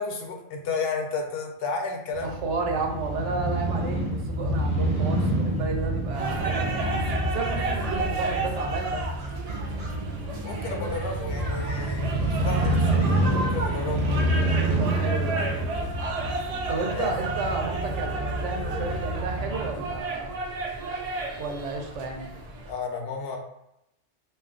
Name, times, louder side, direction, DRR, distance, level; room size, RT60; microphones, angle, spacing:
voice 1, 0.0-2.4 8.0-8.1 10.4-13.2 13.5-14.1 16.9-17.2 17.8-18.0 22.7-23.4, left 4 dB, 65° left, 2 dB, 0.8 m, -32 dB
Crow / Motorcycle, 2.1-20.0, right 1 dB, 35° right, 0.8 m, -28 dB
voice 2, 2.2-7.1 7.3-9.0 12.3-12.8 14.8-15.4 16.7-20.3 21.4-22.3, right 3 dB, 80° right, 2 dB, 0.9 m, -32 dB
sound 1, 6.1-22.7, right 2 dB, 65° right, 0.3 m, -32 dB
2.4 x 2.3 x 3.6 m, 0.82 s
omnidirectional pair, 1.2 m